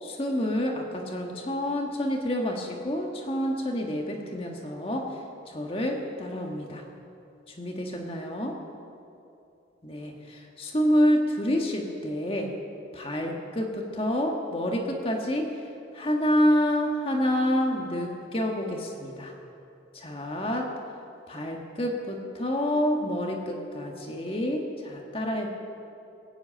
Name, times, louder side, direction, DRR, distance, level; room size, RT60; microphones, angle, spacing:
voice 1, 0.0-5.2 5.5-6.8 7.6-8.6 9.8-12.5 12.9-15.5 15.9-19.3 19.9-20.7 21.3-25.5, equal, 30° left, 1 dB, 1.5 m, -28 dB
19.0 x 8.1 x 8.8 m, 2.7 s
head